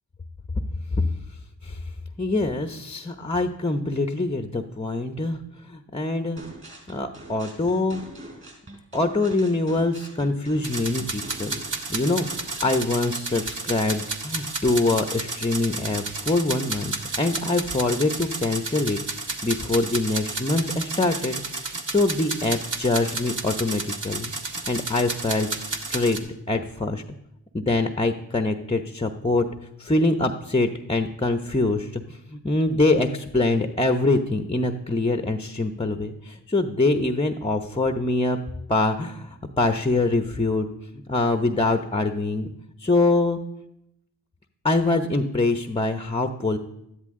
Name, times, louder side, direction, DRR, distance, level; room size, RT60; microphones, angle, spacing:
voice 1, 2.2-5.4 5.6-6.4 6.9-8.0 8.9-11.6 11.9-12.3 12.6-19.0 19.4-24.3 24.7-25.5 25.9-26.2 26.5-27.0 27.5-29.5 29.8-38.4 38.7-40.7 41.1-42.5 42.8-43.4 44.6-46.6, left 2 dB, 15° left, 8 dB, 0.8 m, -24 dB
sound 1, 6.4-12.9, right 1 dB, 25° right, 5.2 m, -43 dB
sound 2, 10.6-26.2, right 3 dB, 45° right, 1.6 m, -32 dB
13.0 x 10.5 x 3.7 m, 0.82 s
supercardioid pair, 50°, 45 cm